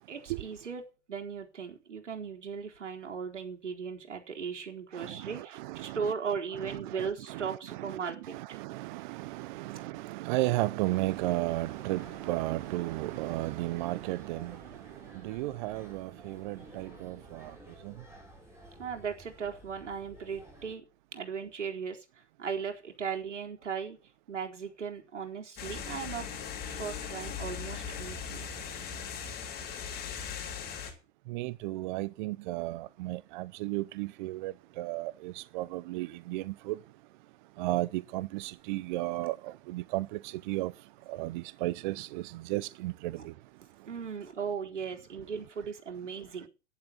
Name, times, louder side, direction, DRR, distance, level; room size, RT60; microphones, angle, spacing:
voice 1, 0.1-0.8 1.1-8.4 14.7-14.8 18.8-20.9 21.1-24.0 24.3-26.3 26.6-28.5 43.2-43.3 43.9-46.5, right 6 dB, 85° right, 4.2 m, -37 dB
voice 2, 4.9-6.1 6.5-14.8 15.2-17.5 17.8-17.9 31.3-36.8 37.6-40.7 41.1-43.3, right 18 dB, 45° right, 0.7 m, -34 dB
sound 1, 10.8-20.7, right 1 dB, 5° right, 7.1 m, -53 dB
sound 2, 25.6-30.9, left 7 dB, 25° left, 7.6 m, -39 dB
11.5 x 10.5 x 8.0 m
hypercardioid pair, 125°, 35 cm